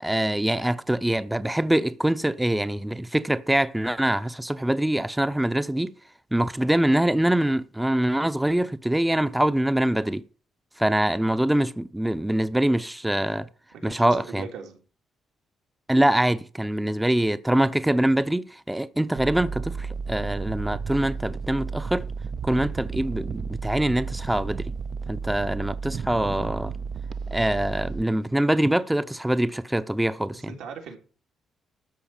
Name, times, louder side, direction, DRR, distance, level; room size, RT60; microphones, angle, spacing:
voice 1, 0.0-5.9 6.3-10.2 10.8-13.5 13.8-14.5 15.9-22.1 22.4-24.7 25.1-26.7 27.3-30.5, right 1 dB, 5° right, 0.6 m, -24 dB
voice 2, 13.8-14.8 30.3-31.0, right 6 dB, 90° right, 3.3 m, -40 dB
sound 1, 19.2-28.0, right 5 dB, 55° right, 0.5 m, -33 dB
13.0 x 4.8 x 8.7 m
cardioid pair, 90°, 0 cm